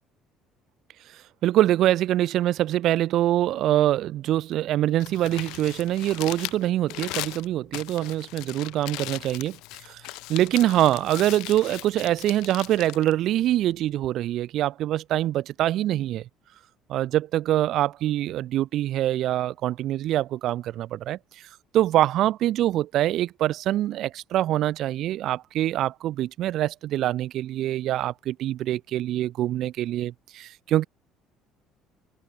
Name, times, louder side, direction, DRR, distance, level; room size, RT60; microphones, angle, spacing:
voice 1, 1.1-9.6 9.8-10.0 10.3-16.3 16.9-30.8, right 13 dB, 65° right, 2.4 m, -24 dB
Crumpling crinkling, 4.8-14.0, left 22 dB, 80° left, 2.1 m, -38 dB
cardioid pair, 100°, 0 cm